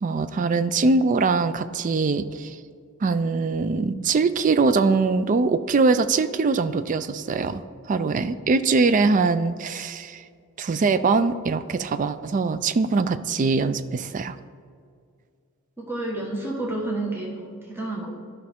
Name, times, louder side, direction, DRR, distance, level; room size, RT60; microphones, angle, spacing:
voice 1, 0.0-2.6 3.0-7.6 7.9-10.2 10.6-14.4, right 4 dB, 40° right, 12 dB, 0.3 m, -22 dB
voice 2, 15.8-18.1, right 2 dB, 10° right, -3 dB, 1.3 m, -30 dB
12.5 x 5.5 x 3.6 m, 2.2 s
head